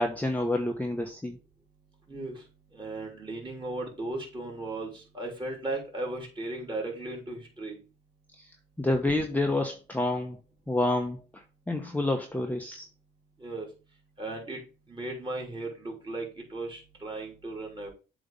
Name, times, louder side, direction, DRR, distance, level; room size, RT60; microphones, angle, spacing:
voice 1, 0.0-1.4 8.4-8.5 8.8-10.4 10.7-12.8, left 2 dB, 10° left, 3 dB, 0.9 m, -28 dB
voice 2, 2.1-2.4 2.7-7.8 13.4-13.7 14.2-14.6 14.9-17.9, right 2 dB, 25° right, -1 dB, 3.2 m, -36 dB
7.7 x 3.1 x 5.3 m, 0.33 s
cardioid pair, 90°, 20 cm